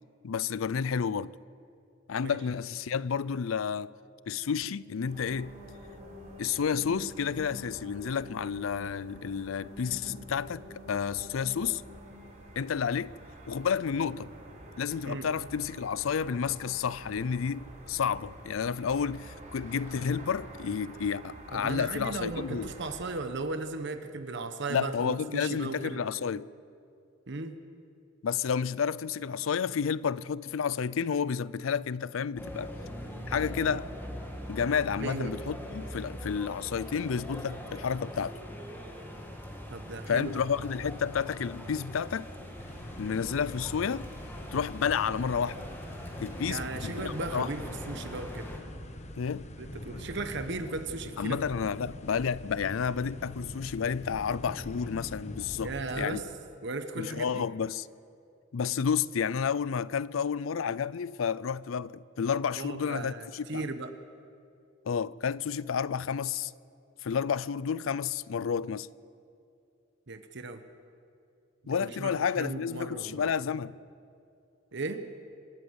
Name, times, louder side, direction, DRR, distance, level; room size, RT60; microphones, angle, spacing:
voice 1, 0.2-1.3 2.1-3.9 4.3-5.5 6.4-11.8 12.6-13.2 13.5-14.3 14.8-22.7 24.7-26.5 28.2-32.7 33.3-33.9 34.5-38.4 40.1-42.3 43.0-44.1 44.5-45.6 46.2-47.5 49.2-49.5 51.2-55.7 56.0-56.2 57.0-57.9 58.5-63.7 64.9-66.5 67.0-68.9 71.7-73.8, left 6 dB, 90° left, 0.5 m, -31 dB
sound 1, 5.1-23.2, equal, 40° right, 4.8 m, -48 dB
voice 2, 21.5-26.0 27.3-27.6 35.0-35.4 39.7-40.3 46.5-47.6 47.9-48.5 49.6-51.4 55.6-56.3 56.6-57.4 62.6-63.9 70.1-70.6 71.8-73.3 74.7-75.1, right 3 dB, 60° right, 1.0 m, -36 dB
sound 2, 32.4-48.6, equal, 10° left, 2.5 m, -42 dB
sound 3, 42.6-56.1, left 1 dB, 35° left, 1.1 m, -44 dB
27.0 x 13.5 x 8.0 m
head